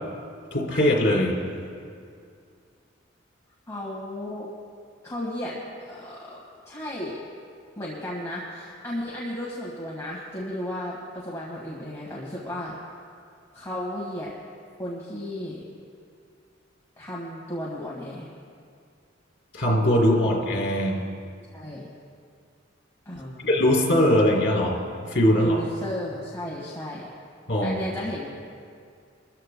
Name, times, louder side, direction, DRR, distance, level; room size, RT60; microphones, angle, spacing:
voice 1, 0.5-1.3 19.5-21.0 23.4-24.8 25.1-25.6 27.5-27.8, left 1 dB, 65° left, -2 dB, 3.4 m, -21 dB
voice 2, 3.7-4.5 5.0-5.6 5.9-6.4 6.6-7.2 7.8-12.7 13.5-14.3 14.8-15.6 17.0-18.3 21.5-21.9 23.0-23.5 25.3-27.1 27.6-28.3, equal, 15° left, -5 dB, 1.6 m, -34 dB
22.0 x 14.0 x 2.2 m, 2.3 s
head